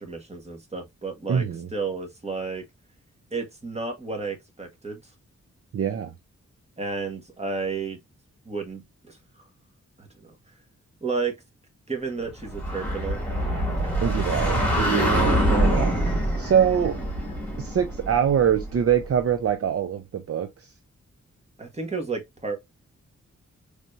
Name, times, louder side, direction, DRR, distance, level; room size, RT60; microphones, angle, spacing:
voice 1, 0.0-2.6 3.3-5.0 6.8-8.0 8.4-9.2 10.0-10.3 11.0-11.4 11.9-13.2 13.8-14.0 21.6-22.6, right 4 dB, 20° right, 1.5 m, -32 dB
voice 2, 1.3-1.7 5.7-6.1 14.0-15.9 16.4-17.0 17.6-20.7, right 8 dB, 55° right, 0.5 m, -24 dB
sound 1, 12.4-19.0, equal, 5° left, 2.6 m, -25 dB
4.1 x 3.3 x 2.5 m
wide cardioid pair, 95°, 29 cm